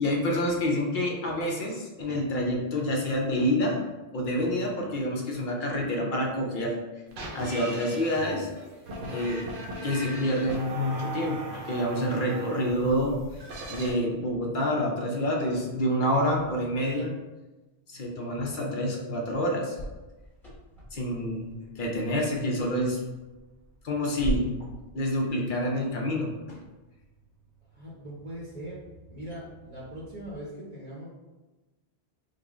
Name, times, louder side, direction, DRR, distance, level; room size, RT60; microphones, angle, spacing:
voice 1, 0.0-3.8 4.1-6.8 7.3-8.5 9.1-9.4 9.8-13.2 13.7-17.1 17.9-19.8 20.9-23.0 23.8-24.7 24.9-26.6, equal, 55° left, -1 dB, 0.7 m, -28 dB
sound 1, 7.1-13.9, right 2 dB, 70° right, 0.9 m, -39 dB
sound 2, 19.7-30.4, equal, ahead, 1.0 m, -42 dB
voice 2, 27.7-28.8 29.1-31.1, right 1 dB, 40° right, -6 dB, 0.7 m, -40 dB
3.7 x 2.0 x 3.5 m, 1.1 s
omnidirectional pair, 1.1 m